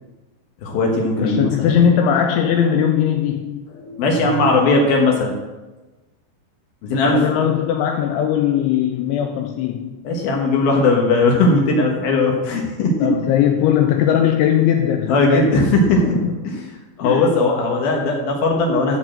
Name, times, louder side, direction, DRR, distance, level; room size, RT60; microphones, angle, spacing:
voice 1, 0.6-1.8 3.7-5.3 6.8-7.2 10.0-12.9 15.1-16.6 17.0-19.0, left 2 dB, 70° left, 0 dB, 2.3 m, -18 dB
voice 2, 1.2-3.7 7.0-10.0 13.0-15.6 16.1-16.4 17.0-17.3, left 9 dB, 85° left, 5 dB, 2.7 m, -19 dB
12.5 x 4.7 x 7.5 m, 1.2 s
omnidirectional pair, 5.9 m